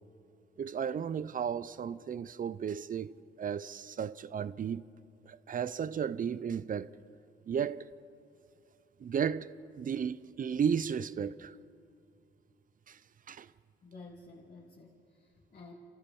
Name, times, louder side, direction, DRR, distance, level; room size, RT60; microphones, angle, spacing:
voice 1, 0.6-4.9 5.3-6.9 7.5-7.9 9.0-11.5 12.9-13.0 13.3-13.5, right 7 dB, 45° right, 0.6 m, -34 dB
voice 2, 13.8-15.7, left 3 dB, 45° left, 2.9 m, -52 dB
29.0 x 13.5 x 7.1 m
cardioid pair, 100°, 20 cm